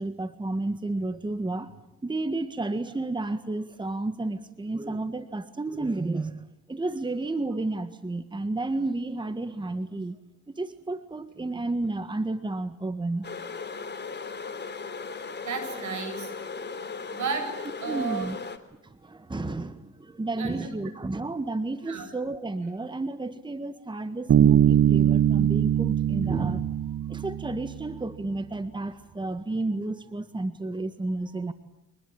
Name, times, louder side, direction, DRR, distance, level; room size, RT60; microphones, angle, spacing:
voice 1, 0.0-1.7 2.0-10.2 10.5-13.3 17.8-18.4 18.8-26.7 27.1-31.5, right 2 dB, 15° right, 12 dB, 1.6 m, -31 dB
sound 1, 13.2-18.6, left 4 dB, 35° left, 3.2 m, -37 dB
voice 2, 15.4-16.3 17.1-17.5 17.8-18.3 20.4-20.7 21.9-22.1, right 6 dB, 70° right, 7 dB, 7.9 m, -32 dB
Bass guitar, 24.3-28.0, right 10 dB, 50° right, 1.0 m, -22 dB
26.0 x 20.5 x 8.8 m, 0.93 s
cardioid pair, 90°, 30 cm